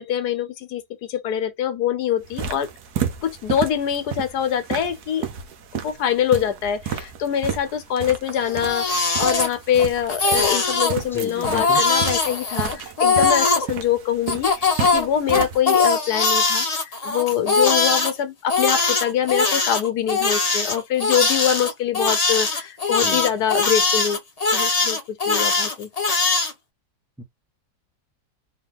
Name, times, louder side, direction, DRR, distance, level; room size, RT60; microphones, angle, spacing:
voice 1, 0.0-2.7 3.2-5.3 5.7-24.2 24.5-25.9, left 9 dB, 75° left, 1.3 m, -24 dB
sound 1, 2.2-15.6, right 8 dB, 70° right, 1.3 m, -32 dB
Crying sobbing, 8.4-9.8 10.1-10.9 11.4-13.7 14.3-18.1 18.5-26.5, left 4 dB, 30° left, 0.9 m, -21 dB
voice 2, 11.1-11.8 23.0-23.2 27.2-27.3, left 2 dB, 5° left, 0.3 m, -33 dB
3.8 x 2.9 x 3.5 m
omnidirectional pair, 1.8 m